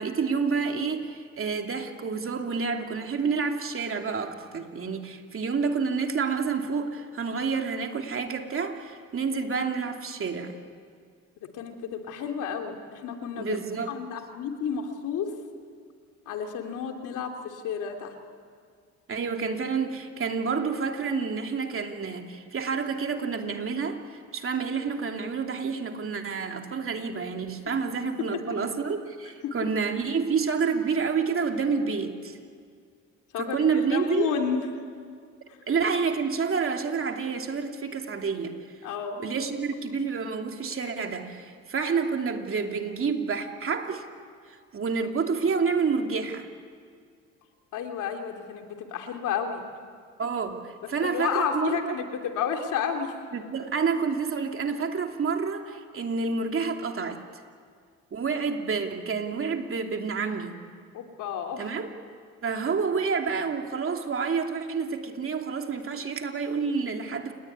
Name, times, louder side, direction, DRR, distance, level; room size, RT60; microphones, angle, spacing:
voice 1, 0.0-10.5 13.4-13.9 19.1-32.4 33.4-34.3 35.7-38.6 39.2-44.0 44.7-46.5 50.2-51.8 53.3-57.2 58.1-60.6 61.6-61.9 62.4-67.3, right 5 dB, 45° right, 4 dB, 2.9 m, -29 dB
voice 2, 11.4-13.6 13.9-15.3 16.3-18.1 27.7-27.8 29.4-29.5 33.3-34.6 38.8-39.2 47.7-49.6 51.0-53.1 60.9-61.7, left 7 dB, 85° left, 4 dB, 3.0 m, -31 dB
29.0 x 19.5 x 9.8 m, 2.1 s
cardioid pair, 90°, 30 cm